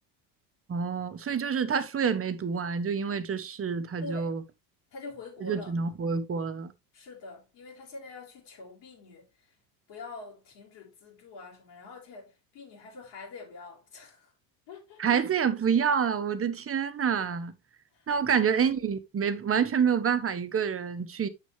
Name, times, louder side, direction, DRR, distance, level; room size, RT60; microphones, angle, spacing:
voice 1, 0.7-4.4 5.4-6.7 15.0-17.5 18.1-21.3, right 6 dB, 25° right, 1.3 m, -27 dB
voice 2, 4.0-4.4 4.9-5.7 6.9-9.6 9.9-14.3 14.7-15.2 17.9-18.5, left 3 dB, 65° left, 3.9 m, -45 dB
8.6 x 6.3 x 3.3 m
hypercardioid pair, 80°, 49 cm